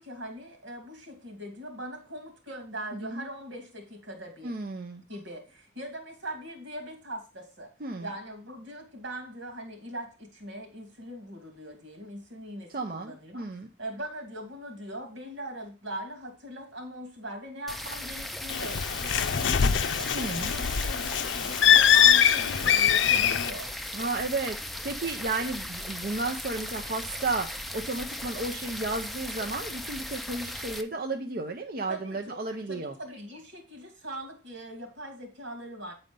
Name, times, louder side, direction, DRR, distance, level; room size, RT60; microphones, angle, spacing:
voice 1, 0.0-4.5 5.1-7.7 8.0-13.4 13.8-23.7 31.9-32.4 32.7-35.9, equal, 90° right, 2 dB, 2.6 m, -41 dB
voice 2, 4.4-5.0 7.8-8.1 12.7-13.7 20.1-20.5 23.9-32.9, right 3 dB, 50° right, 4 dB, 0.6 m, -33 dB
sound 1, 17.7-30.8, left 1 dB, ahead, 0.4 m, -37 dB
Bird, 18.5-23.5, left 9 dB, 85° left, 0.5 m, -22 dB
9.0 x 4.2 x 5.2 m, 0.33 s
head